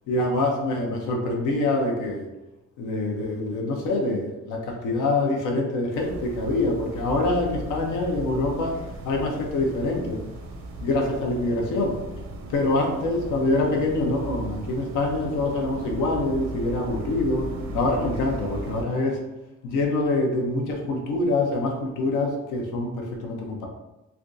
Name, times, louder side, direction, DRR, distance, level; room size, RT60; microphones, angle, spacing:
voice 1, 0.1-2.3 2.8-10.2 10.8-12.0 12.5-17.5 17.7-19.2 19.6-23.7, left 2 dB, 90° left, 0 dB, 0.8 m, -25 dB
sound 1, 5.9-18.9, right 1 dB, 65° right, 0.6 m, -37 dB
3.4 x 2.5 x 2.6 m, 1.0 s
cardioid pair, 90°, 30 cm